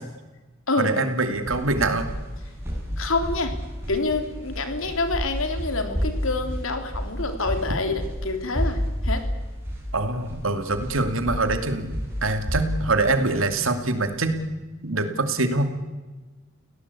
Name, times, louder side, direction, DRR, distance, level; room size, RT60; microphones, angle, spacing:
voice 1, 0.8-2.1 9.9-11.9 12.2-14.4 14.8-15.7, right 2 dB, 75° right, 8 dB, 2.6 m, -24 dB
sound 1, 1.2-14.4, equal, 10° right, 6.8 m, -30 dB
voice 2, 3.0-3.5 3.9-8.8 9.0-9.2, left 3 dB, 75° left, 7 dB, 3.3 m, -27 dB
29.5 x 17.5 x 8.5 m, 1.2 s
head